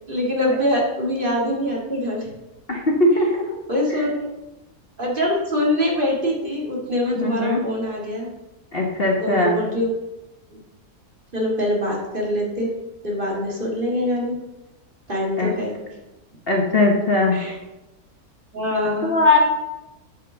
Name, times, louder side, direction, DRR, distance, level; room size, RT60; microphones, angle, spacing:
voice 1, 0.1-2.3 3.7-4.3 5.0-8.3 9.2-9.9 10.5-10.6 11.3-12.7 13.0-14.4 15.1-15.7 17.3-17.5 18.5-19.2, left 1 dB, 35° right, -3 dB, 2.3 m, -24 dB
voice 2, 2.7-3.4 3.9-4.1 7.2-7.6 8.7-9.6 15.4-15.5 16.5-17.4 19.0-19.4, left 2 dB, 40° left, 0 dB, 1.2 m, -19 dB
8.1 x 5.4 x 6.6 m, 1.0 s
omnidirectional pair, 1.6 m